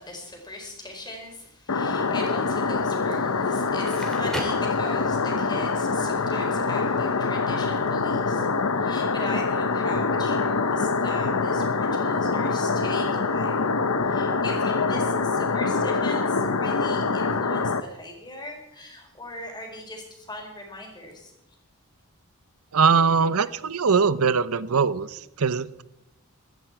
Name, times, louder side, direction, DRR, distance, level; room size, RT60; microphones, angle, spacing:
voice 1, 0.0-8.5 8.8-13.6 14.1-21.3, left 2 dB, 20° left, 1 dB, 4.3 m, -39 dB
sound 1, 1.7-17.8, left 4 dB, 85° left, 0.9 m, -25 dB
Crackle, 3.8-5.4, equal, ahead, 2.5 m, -36 dB
voice 2, 22.7-25.8, right 5 dB, 90° right, 16 dB, 0.7 m, -22 dB
16.0 x 13.0 x 4.7 m, 0.88 s
head